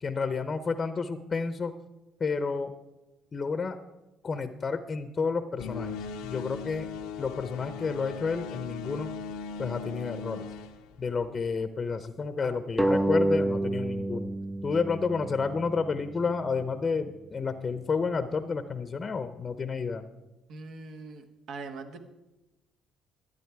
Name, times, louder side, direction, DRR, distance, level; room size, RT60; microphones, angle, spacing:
voice 1, 0.0-1.7 2.2-2.7 3.3-3.8 4.2-6.0 6.2-6.9 7.2-9.1 9.6-10.5 11.0-14.3 14.6-20.0, left 4 dB, 35° left, 11 dB, 0.7 m, -30 dB
sound 1, 5.6-11.6, left 5 dB, 90° left, 0.8 m, -39 dB
sound 2, 12.8-16.0, right 1 dB, 10° right, 0.4 m, -28 dB
voice 2, 20.5-22.0, right 3 dB, 65° right, 7 dB, 1.2 m, -42 dB
12.5 x 9.3 x 4.7 m, 1.0 s
supercardioid pair, 75°, 0 cm